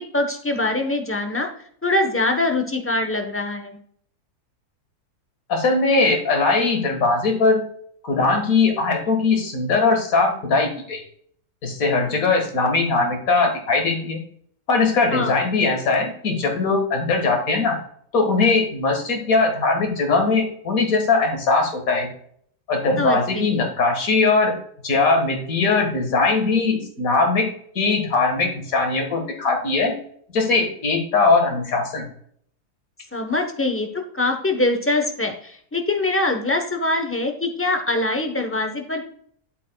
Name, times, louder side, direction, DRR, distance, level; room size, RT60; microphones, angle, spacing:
voice 1, 0.0-1.5 1.8-3.8 15.1-15.3 23.0-23.5 33.1-39.0, left 2 dB, 15° left, 4 dB, 0.4 m, -23 dB
voice 2, 5.5-7.6 8.0-11.0 11.6-14.2 14.7-17.8 18.1-22.1 22.7-24.6 24.8-27.5 27.8-29.9 30.3-32.1, left 3 dB, 60° left, 3 dB, 1.9 m, -20 dB
8.3 x 8.1 x 2.2 m, 0.62 s
omnidirectional pair, 1.7 m